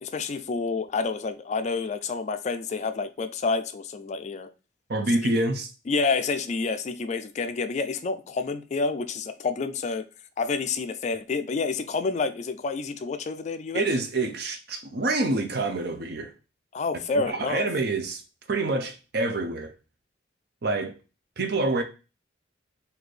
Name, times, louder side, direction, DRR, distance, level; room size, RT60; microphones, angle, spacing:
voice 1, 0.0-4.5 5.2-5.3 5.9-10.1 10.4-13.8 16.7-17.7, left 4 dB, 40° left, 0.3 m, -28 dB
voice 2, 4.9-5.7 13.7-16.3 17.1-18.2 18.5-19.7 20.6-20.9 21.4-21.8, right 2 dB, 55° right, 0.7 m, -27 dB
4.2 x 2.7 x 3.2 m
head